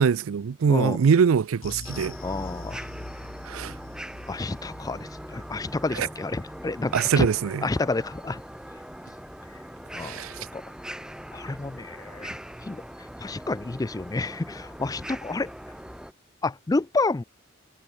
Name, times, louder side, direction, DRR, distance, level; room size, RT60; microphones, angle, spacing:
voice 1, 0.0-2.1 3.4-3.7 5.9-6.1 6.9-7.7 10.0-10.4, right 6 dB, 90° right, 0.4 m, -23 dB
sound 1, 1.6-10.3 10.6-10.8 11.2-11.3, left 2 dB, 85° left, 1.8 m, -45 dB
sound 2, 1.8-16.1, equal, 5° right, 1.8 m, -41 dB
voice 2, 2.2-2.9 4.3-7.3 7.6-8.4 10.0-10.2 10.5-10.6 11.3-12.4 12.6-12.8 13.2-15.5 16.4-17.2, left 3 dB, 20° left, 0.4 m, -29 dB
head